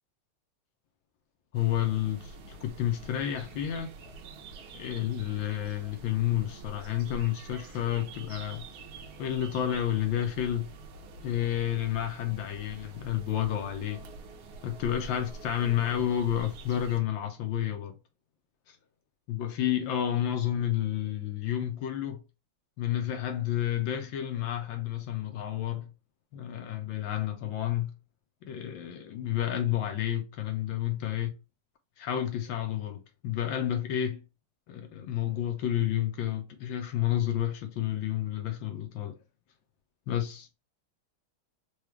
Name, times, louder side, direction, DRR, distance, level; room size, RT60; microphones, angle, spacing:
voice 1, 1.5-3.9 4.7-8.6 9.2-10.7 11.2-14.0 14.6-18.0 18.7-18.8 19.3-22.2 22.8-25.9 26.3-27.9 28.4-31.3 32.0-34.2 34.7-39.2 40.1-40.5, left 11 dB, 70° left, 1.3 m, -30 dB
sound 1, 1.5-17.0, right 3 dB, 90° right, 1.6 m, -46 dB
4.8 x 2.3 x 3.1 m
omnidirectional pair, 2.3 m